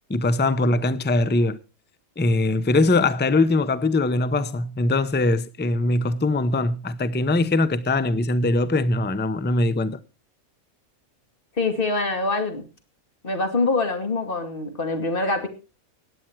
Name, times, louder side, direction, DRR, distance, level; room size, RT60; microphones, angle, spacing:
voice 1, 0.1-1.6 2.2-10.0, left 2 dB, 10° left, 0.5 m, -21 dB
voice 2, 11.6-12.6 13.2-15.5, left 3 dB, 40° left, 2.5 m, -24 dB
16.5 x 10.0 x 4.6 m
omnidirectional pair, 1.5 m